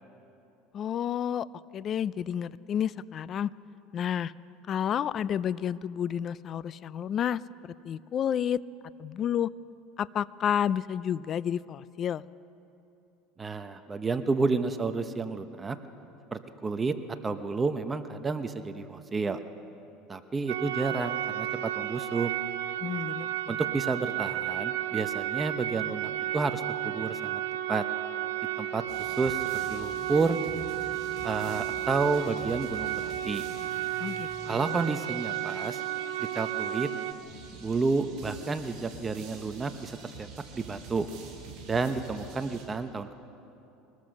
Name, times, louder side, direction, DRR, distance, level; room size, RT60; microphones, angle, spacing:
voice 1, 0.7-1.5 1.7-3.5 3.9-4.3 4.7-8.6 9.0-9.5 10.0-12.2 22.8-23.6 34.0-34.8, left 9 dB, 40° left, 19 dB, 0.5 m, -30 dB
voice 2, 13.4-15.8 16.3-16.9 17.2-19.4 20.1-22.3 23.5-27.4 27.7-27.8 28.6-30.4 31.2-33.4 34.5-35.8 36.3-36.9 37.6-40.3 40.5-41.1 41.7-43.2, right 4 dB, 20° right, 9 dB, 0.9 m, -30 dB
sound 1, 20.5-37.1, right 12 dB, 85° right, 0.8 m, -33 dB
sound 2, 28.9-42.6, right 4 dB, 50° right, 7.1 m, -47 dB
23.0 x 19.5 x 6.5 m, 2.8 s
supercardioid pair, 110°, 0 cm